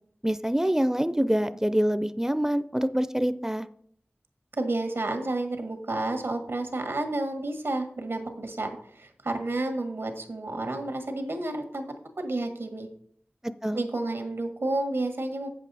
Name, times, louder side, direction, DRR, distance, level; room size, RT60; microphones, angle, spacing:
voice 1, 0.2-3.7 13.4-13.8, equal, 10° right, 13 dB, 0.4 m, -26 dB
voice 2, 4.6-8.7 8.9-11.9 12.2-12.9 13.7-15.5, right 2 dB, 90° right, 6 dB, 1.4 m, -30 dB
8.3 x 7.4 x 4.1 m, 0.65 s
wide cardioid pair, 40°, 4 cm